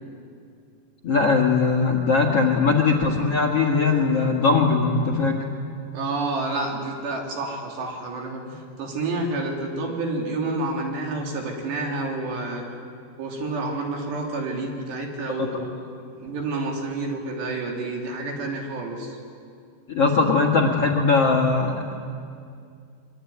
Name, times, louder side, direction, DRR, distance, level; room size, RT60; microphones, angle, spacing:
voice 1, 1.0-5.4 15.4-15.6 19.9-21.9, left 4 dB, 45° left, 2 dB, 2.1 m, -20 dB
voice 2, 5.9-12.7 13.2-15.8 16.2-19.2, right 2 dB, 70° right, 0 dB, 5.3 m, -29 dB
24.0 x 23.5 x 9.5 m, 2.3 s
omnidirectional pair, 5.1 m